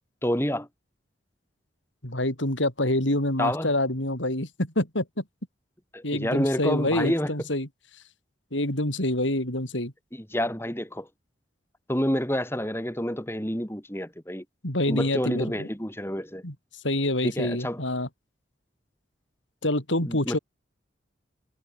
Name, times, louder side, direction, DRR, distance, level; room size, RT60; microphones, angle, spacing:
voice 1, 0.2-0.7 3.4-3.7 5.9-7.3 10.1-11.1 11.9-14.4 14.9-16.4 17.2-17.8 20.0-20.4, equal, 15° left, 6.4 m, -28 dB
voice 2, 2.0-5.2 6.0-7.7 8.5-9.9 14.6-15.7 16.4-16.5 16.8-18.1 19.6-20.4, left 1 dB, 90° left, 7.0 m, -26 dB
head